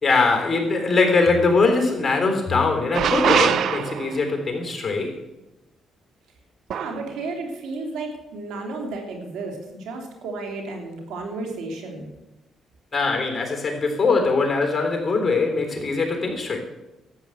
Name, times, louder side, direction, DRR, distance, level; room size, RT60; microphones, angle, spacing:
voice 1, 0.0-5.2 12.9-16.6, left 3 dB, 25° left, 3 dB, 3.5 m, -21 dB
sound 1, 2.9-4.3 6.7-7.0, right 8 dB, 70° right, 0.6 m, -22 dB
voice 2, 6.7-12.1, right 3 dB, 85° right, 2 dB, 3.0 m, -33 dB
12.5 x 8.3 x 7.8 m, 1.0 s
cardioid pair, 90°, 0 cm